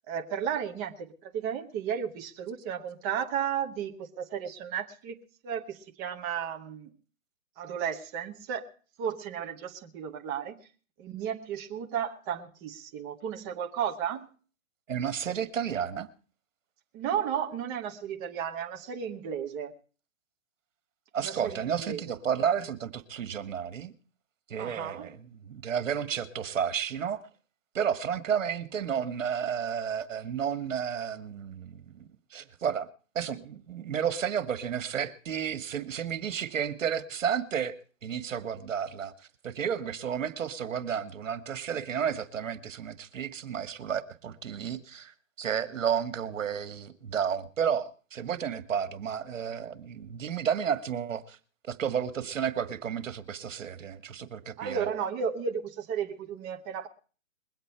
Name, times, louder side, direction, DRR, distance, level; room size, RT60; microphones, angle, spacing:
voice 1, 0.1-6.9 7.6-8.7 9.0-10.5 11.0-14.3 16.9-19.7 21.2-22.0 24.6-25.1 29.0-29.1 54.6-56.9, right 8 dB, 15° right, 0.9 m, -34 dB
voice 2, 14.9-16.1 21.1-23.9 24.5-27.2 27.7-32.9 33.2-37.7 38.0-39.1 39.4-51.4 51.6-54.9, right 8 dB, 70° right, 1.8 m, -32 dB
22.0 x 8.3 x 4.5 m
hypercardioid pair, 165°, 40 cm